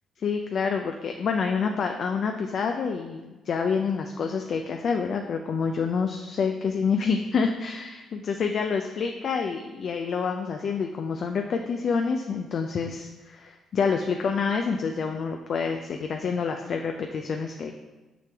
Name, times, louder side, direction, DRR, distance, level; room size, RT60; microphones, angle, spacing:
voice 1, 0.2-17.7, left 5 dB, 60° left, 4 dB, 0.5 m, -27 dB
6.0 x 5.9 x 3.4 m, 1.1 s
supercardioid pair, 65°, 0 cm